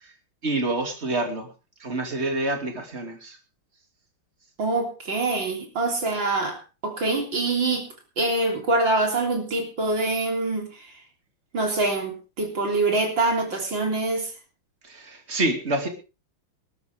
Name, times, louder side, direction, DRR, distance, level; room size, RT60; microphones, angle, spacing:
voice 1, 0.4-1.5 1.8-3.4 14.8-15.9, right 2 dB, 30° right, 5 dB, 2.8 m, -27 dB
voice 2, 4.6-6.6 6.8-7.9 8.2-10.9 11.5-14.3, right 2 dB, 55° right, 3 dB, 4.1 m, -25 dB
19.5 x 13.0 x 3.5 m, 0.31 s
omnidirectional pair, 2.4 m